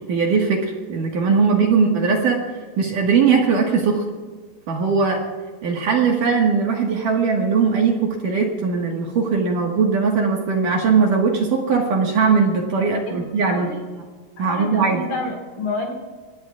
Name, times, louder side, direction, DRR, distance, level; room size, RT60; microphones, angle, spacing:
voice 1, 0.1-2.4 2.8-4.0 4.7-5.2 5.6-13.7 14.4-15.0, right 5 dB, 60° right, 0 dB, 2.7 m, -19 dB
voice 2, 13.1-13.8 14.4-15.9, left 2 dB, 55° left, 1 dB, 3.1 m, -29 dB
25.0 x 19.0 x 2.4 m, 1.5 s
omnidirectional pair, 5.1 m